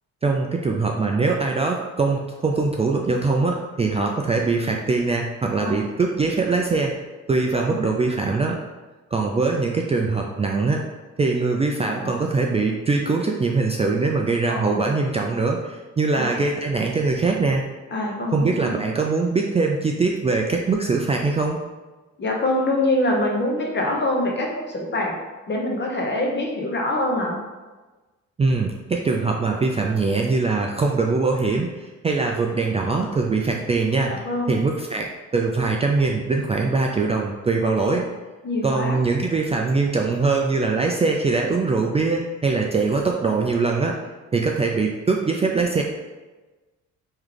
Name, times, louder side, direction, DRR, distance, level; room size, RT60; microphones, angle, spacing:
voice 1, 0.2-6.9 7.3-8.6 9.1-10.9 11.2-17.6 18.3-21.6 28.4-34.1 34.5-38.1 38.6-44.0 44.3-45.8, right 3 dB, 20° right, 0 dB, 0.3 m, -22 dB
voice 2, 7.5-7.9 11.9-12.1 14.5-14.8 16.1-16.4 17.9-18.7 22.2-25.2 25.5-27.4 34.1-34.6 37.7-38.0 38.4-39.0, left 1 dB, 35° left, 0 dB, 1.0 m, -25 dB
3.2 x 3.2 x 3.8 m, 1.2 s
cardioid pair, 90°, 30 cm